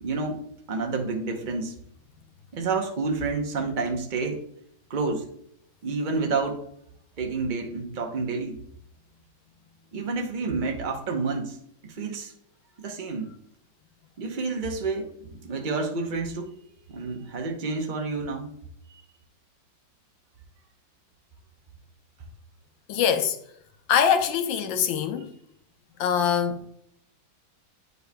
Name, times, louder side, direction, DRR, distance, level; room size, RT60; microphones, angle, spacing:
voice 1, 0.0-1.7 2.5-4.4 4.9-5.3 5.8-6.6 7.2-8.6 9.9-11.6 11.8-12.3 12.8-13.3 14.2-16.5 16.9-18.5 18.9-19.0, right 4 dB, 70° right, 0.4 m, -29 dB
voice 2, 22.9-23.4 23.9-25.3 26.0-26.7, left 8 dB, 75° left, 1.4 m, -23 dB
9.1 x 5.4 x 2.2 m
omnidirectional pair, 2.2 m